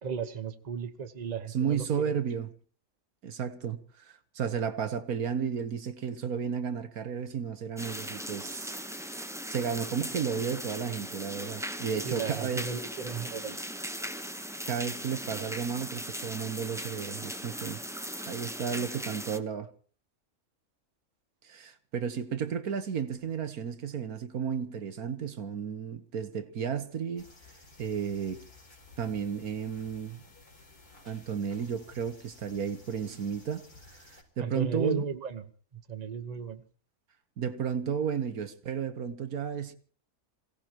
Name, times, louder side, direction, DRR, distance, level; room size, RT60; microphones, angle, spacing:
voice 1, 0.0-2.1 12.0-13.6 34.4-35.4 35.7-36.6, right 5 dB, 30° right, 1.2 m, -35 dB
voice 2, 1.5-2.5 3.2-8.8 9.5-12.7 14.7-17.8 18.2-19.7 21.4-27.3 27.8-28.4 29.0-30.2 31.1-33.6 33.9-35.1 37.4-39.7, right 7 dB, 70° right, 1.7 m, -33 dB
sound 1, 7.8-19.4, equal, 5° right, 0.8 m, -38 dB
sound 2, 27.2-34.2, left 2 dB, 90° left, 4.8 m, -55 dB
28.0 x 17.0 x 3.0 m
omnidirectional pair, 1.6 m